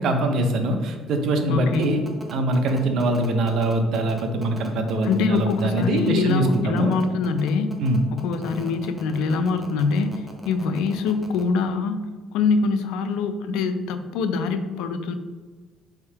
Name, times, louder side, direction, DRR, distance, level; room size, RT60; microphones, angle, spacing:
voice 1, 0.0-2.0 2.3-6.9 7.8-8.0, right 1 dB, 55° right, 5 dB, 0.6 m, -23 dB
voice 2, 1.5-2.1 5.0-7.7 8.1-12.0 12.3-15.1, left 4 dB, 85° left, 9 dB, 0.4 m, -24 dB
sound 1, 1.7-11.4, right 1 dB, 10° right, 0.6 m, -41 dB
3.5 x 2.7 x 4.4 m, 1.4 s
cardioid pair, 140°, 0 cm